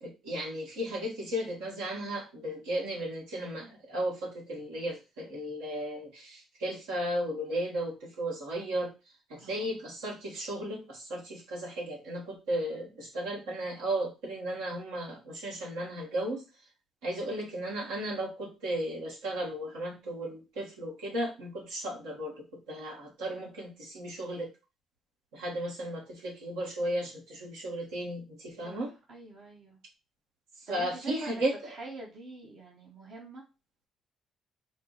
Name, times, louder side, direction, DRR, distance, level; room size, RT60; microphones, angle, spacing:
voice 1, 0.0-8.9 9.3-16.4 17.0-24.5 25.3-28.9 30.7-31.6, right 1 dB, 85° right, -2 dB, 1.3 m, -35 dB
voice 2, 28.6-29.8 30.7-33.5, right 2 dB, 60° right, -1 dB, 0.9 m, -45 dB
4.4 x 2.0 x 3.8 m, 0.29 s
hypercardioid pair, 55°, 0 cm